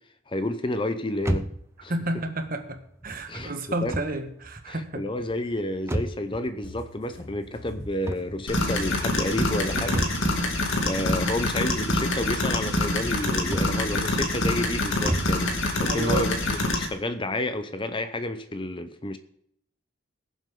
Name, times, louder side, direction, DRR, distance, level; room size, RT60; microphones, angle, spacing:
voice 1, 0.3-1.5 1.8-1.9 3.3-3.5 3.8-3.9 4.7-10.2 10.8-19.2, left 1 dB, 25° left, 10 dB, 0.7 m, -30 dB
sound 1, 1.2-15.5, right 1 dB, 15° right, 0.7 m, -36 dB
voice 2, 1.9-5.0 15.8-16.3, right 1 dB, 45° right, 6 dB, 1.6 m, -31 dB
sound 2, 6.6-14.8, left 2 dB, 85° left, 5.0 m, -45 dB
sound 3, 8.5-16.9, left 1 dB, 70° left, 2.4 m, -26 dB
21.5 x 7.6 x 3.8 m, 0.71 s
head